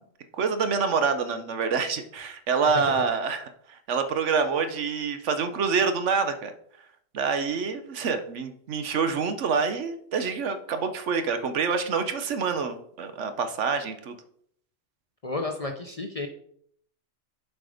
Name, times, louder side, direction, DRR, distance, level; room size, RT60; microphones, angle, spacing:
voice 1, 0.3-6.5 7.1-14.2, right 5 dB, 70° right, 9 dB, 1.1 m, -27 dB
voice 2, 2.6-3.0 15.2-16.3, left 3 dB, 35° left, 4 dB, 0.6 m, -32 dB
7.6 x 5.1 x 5.0 m, 0.66 s
omnidirectional pair, 1.3 m